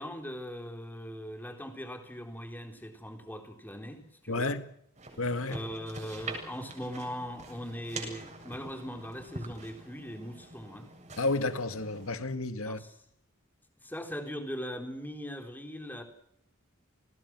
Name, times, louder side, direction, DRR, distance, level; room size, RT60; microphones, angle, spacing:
voice 1, 0.0-4.5 5.5-10.9 12.6-12.9 13.8-16.0, equal, 10° left, 3.8 m, -40 dB
voice 2, 4.3-4.6 5.2-5.6 11.2-12.8, left 2 dB, 80° left, 2.0 m, -31 dB
sound 1, 4.9-12.1, right 3 dB, 35° right, 7.6 m, -45 dB
30.0 x 20.5 x 6.2 m
head